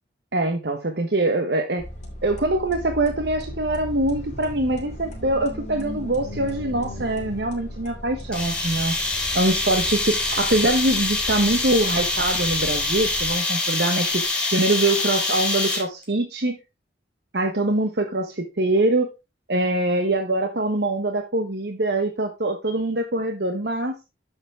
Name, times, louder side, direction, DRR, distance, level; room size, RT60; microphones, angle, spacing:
voice 1, 0.3-1.8 2.2-9.0 9.3-14.2 14.5-16.6 17.3-19.1 19.5-23.9, right 2 dB, 65° right, 1.2 m, -23 dB
sound 1, 1.8-13.3, equal, 40° left, 3.0 m, -37 dB
sound 2, 8.3-16.0, left 2 dB, 5° left, 3.1 m, -25 dB
10.0 x 7.1 x 3.4 m
head